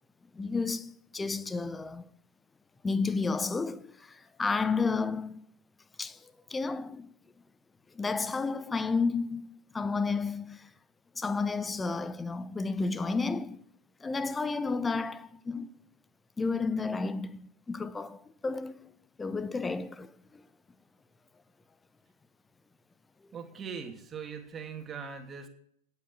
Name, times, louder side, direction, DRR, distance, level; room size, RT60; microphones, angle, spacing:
voice 1, 0.3-2.1 2.8-5.4 6.0-6.2 6.5-7.1 7.9-10.7 11.2-13.6 14.0-15.7 16.4-18.9 19.2-20.4, left 4 dB, 10° left, 1.0 m, -32 dB
voice 2, 23.3-25.5, right 6 dB, 20° right, 2.9 m, -40 dB
18.0 x 8.5 x 8.5 m
figure-of-eight pair, 90°, 0 cm